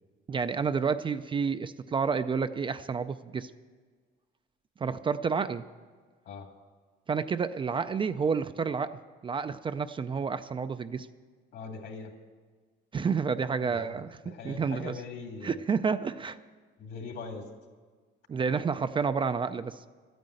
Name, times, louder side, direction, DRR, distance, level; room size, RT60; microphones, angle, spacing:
voice 1, 0.3-3.5 4.8-5.7 7.1-11.1 12.9-14.2 14.4-15.0 15.4-16.4 18.3-19.9, right 5 dB, 25° right, 11 dB, 0.4 m, -30 dB
voice 2, 11.5-12.1 13.6-15.6 16.8-17.4, left 4 dB, 70° left, 3 dB, 2.3 m, -41 dB
12.5 x 9.3 x 7.7 m, 1.5 s
cardioid pair, 130°, 19 cm